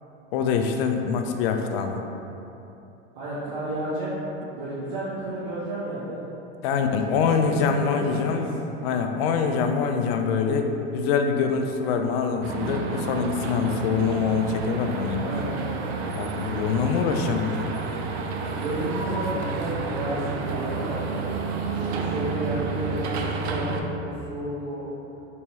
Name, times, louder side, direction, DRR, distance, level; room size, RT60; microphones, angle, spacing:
voice 1, 0.3-2.0 6.6-8.4 8.8-15.3 16.2-17.7, left 5 dB, 70° left, 5 dB, 0.4 m, -24 dB
voice 2, 3.1-4.1 4.5-6.2 7.0-7.6 7.9-8.7 9.1-9.4 15.1-15.9 18.4-21.0 21.7-24.8, right 1 dB, 55° right, -9 dB, 0.9 m, -32 dB
sound 1, 12.4-23.8, right 4 dB, 80° right, 0.5 m, -30 dB
3.5 x 2.8 x 3.0 m, 3.0 s
supercardioid pair, 140°, 32 cm